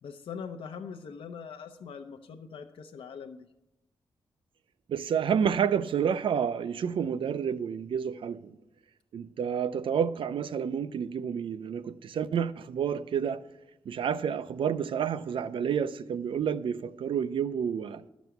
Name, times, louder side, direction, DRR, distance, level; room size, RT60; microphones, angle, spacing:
voice 1, 0.0-3.5, left 6 dB, 85° left, 0.6 m, -42 dB
voice 2, 4.9-8.6 9.1-13.4 13.9-18.0, right 7 dB, 75° right, 0.5 m, -29 dB
12.0 x 6.1 x 7.0 m
wide cardioid pair, 125°, 9 cm